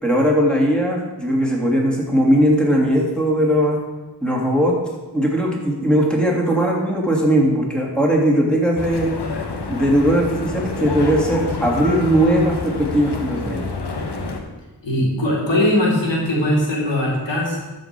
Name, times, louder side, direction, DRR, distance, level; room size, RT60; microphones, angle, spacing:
voice 1, 0.0-3.8 4.2-4.8 5.1-9.1 9.7-13.7, equal, ahead, -2 dB, 3.0 m, -18 dB
sound 1, 8.8-14.4, left 3 dB, 65° left, 1.4 m, -28 dB
voice 2, 14.8-17.6, left 1 dB, 85° left, -4 dB, 3.0 m, -20 dB
13.0 x 5.3 x 6.1 m, 1.1 s
cardioid pair, 50°, 43 cm